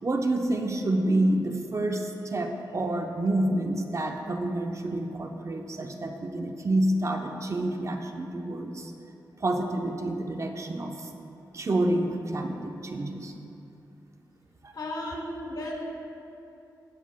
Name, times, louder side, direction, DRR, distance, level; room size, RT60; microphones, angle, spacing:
voice 1, 0.0-8.9 9.4-11.1 11.5-13.3 14.6-14.7, right 1 dB, 40° right, 3 dB, 0.8 m, -28 dB
voice 2, 14.7-15.7, left 1 dB, 60° left, -3 dB, 2.2 m, -34 dB
16.0 x 8.9 x 2.2 m, 2.8 s
cardioid pair, 70°, 8 cm